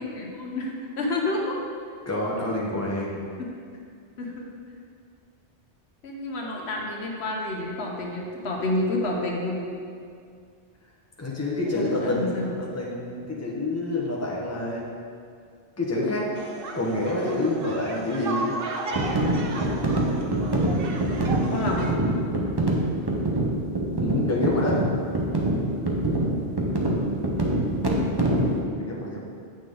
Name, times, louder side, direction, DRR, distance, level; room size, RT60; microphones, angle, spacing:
voice 1, 0.0-1.6 2.4-2.5 3.4-3.5 4.2-4.5 6.0-9.6 11.6-12.5 21.4-22.0, left 2 dB, 75° left, -1 dB, 1.2 m, -29 dB
voice 2, 2.1-3.3 11.2-14.8 15.8-16.3 16.7-18.5 24.0-24.8 28.8-29.2, left 2 dB, 15° left, -4 dB, 1.0 m, -27 dB
sound 1, 16.3-21.9, right 2 dB, 60° right, 0.8 m, -34 dB
sound 2, 18.9-28.6, right 1 dB, 25° right, 0.7 m, -25 dB
8.5 x 5.9 x 3.8 m, 2.3 s
omnidirectional pair, 1.1 m